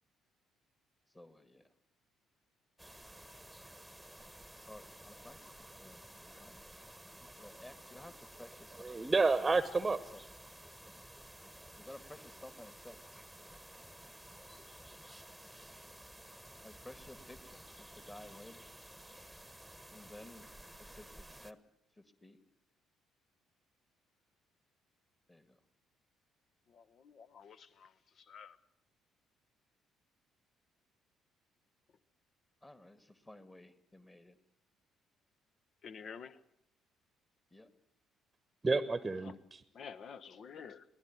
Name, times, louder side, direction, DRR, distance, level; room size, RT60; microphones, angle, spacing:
voice 1, 1.1-1.7 4.7-6.6 7.4-9.0 9.4-9.5 10.1-10.2 11.7-13.0 16.6-18.7 19.9-20.5 20.8-21.6 22.0-22.4 25.3-25.6 32.6-34.4 37.5-37.7, left 1 dB, 15° left, 11 dB, 2.2 m, -54 dB
sound 1, 2.8-21.5, right 1 dB, ahead, 1.5 m, -54 dB
voice 2, 8.8-10.0 38.6-39.6, right 3 dB, 20° right, 14 dB, 1.1 m, -30 dB
voice 3, 26.7-27.9 28.3-28.6 35.8-36.4 39.3-39.4 39.7-40.8, left 6 dB, 50° left, 14 dB, 1.1 m, -49 dB
23.5 x 17.0 x 9.4 m, 0.74 s
figure-of-eight pair, 45°, 0 cm